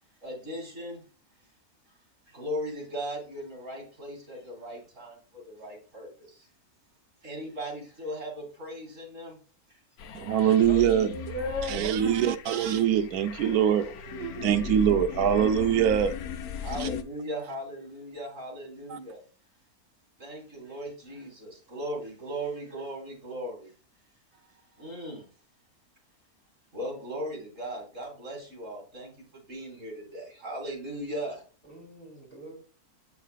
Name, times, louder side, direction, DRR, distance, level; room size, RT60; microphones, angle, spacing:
voice 1, 0.2-1.0 2.3-6.5 7.2-9.4 16.6-19.2 20.2-23.7 24.5-25.2 26.7-31.4, right 1 dB, 55° right, 3.3 m, -38 dB
sound 1, 10.0-17.0, left 7 dB, 85° left, 1.1 m, -38 dB
voice 2, 10.1-11.2 11.7-16.1 16.8-16.9 18.9-19.0, right 9 dB, 85° right, 1.1 m, -24 dB
voice 3, 10.7-11.8 31.7-32.5, left 1 dB, 5° left, 3.1 m, -36 dB
8.1 x 5.7 x 2.4 m
omnidirectional pair, 1.6 m